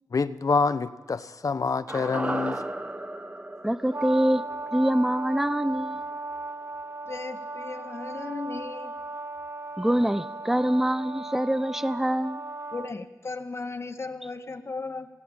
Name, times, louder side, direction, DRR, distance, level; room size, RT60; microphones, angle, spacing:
voice 1, 0.1-2.6, left 4 dB, 65° left, 1.1 m, -26 dB
sound 1, 1.9-6.2 6.5-6.6, right 1 dB, 20° right, 1.5 m, -36 dB
voice 2, 3.6-4.4 4.7-6.0 9.8-12.4, equal, 5° right, 0.8 m, -25 dB
Brass instrument, 3.9-12.9, right 2 dB, 45° right, 1.4 m, -36 dB
voice 3, 7.1-8.9 12.7-15.1, left 3 dB, 45° left, 1.9 m, -36 dB
26.5 x 19.0 x 8.9 m
cardioid pair, 60°, 6 cm